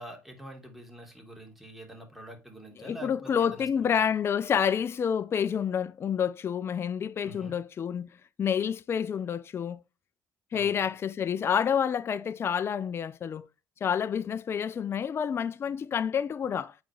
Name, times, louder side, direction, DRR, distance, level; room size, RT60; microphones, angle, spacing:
voice 1, 0.0-3.7 7.2-7.5 10.5-10.8, right 1 dB, ahead, 3.0 m, -46 dB
voice 2, 2.8-8.1 8.4-9.8 10.5-13.5 13.8-16.8, left 8 dB, 45° left, 0.5 m, -28 dB
8.8 x 4.2 x 4.7 m
cardioid pair, 90°, 6 cm